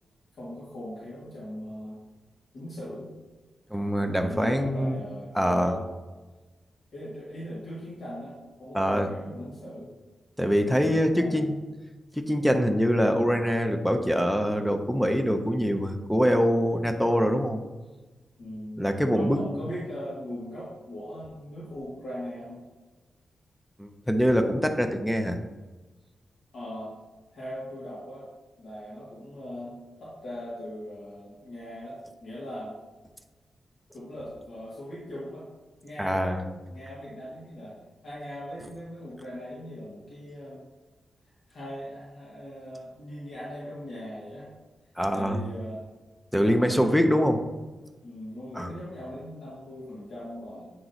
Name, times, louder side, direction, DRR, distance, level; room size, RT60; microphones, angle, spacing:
voice 1, 0.4-2.0 2.5-3.1 4.1-5.9 6.9-9.9 10.9-11.5 18.4-22.6 26.5-26.9 27.3-28.3 28.6-32.7 33.9-35.5 35.8-37.8 38.0-40.6 41.5-44.6 45.1-45.8 46.4-47.2 48.0-50.7, equal, 65° left, -9 dB, 1.9 m, -39 dB
voice 2, 3.7-5.0 5.3-5.7 8.7-9.1 10.4-11.6 12.2-17.6 18.8-19.4 23.8-25.4 36.0-36.4 45.0-45.4 46.3-47.4 48.6-48.7, equal, ahead, 5 dB, 0.5 m, -24 dB
8.6 x 3.0 x 3.9 m, 1.2 s
wide cardioid pair, 165°, 0 cm